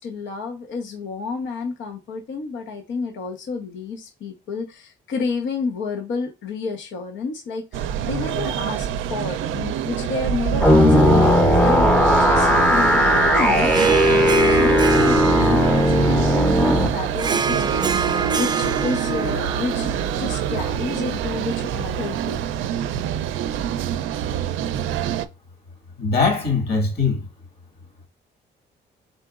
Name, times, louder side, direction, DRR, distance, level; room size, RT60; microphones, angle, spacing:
voice 1, 0.0-11.9 12.2-22.5, left 4 dB, 70° left, 0.9 m, -30 dB
sound 1, 7.7-25.3, right 9 dB, 80° right, 0.4 m, -26 dB
sound 2, 10.6-16.9, equal, 5° left, 0.7 m, -16 dB
Harp, 13.5-22.2, right 5 dB, 20° right, 0.4 m, -28 dB
voice 2, 26.0-27.2, left 4 dB, 55° left, 2.0 m, -21 dB
4.1 x 3.8 x 2.4 m
cardioid pair, 90°, 20 cm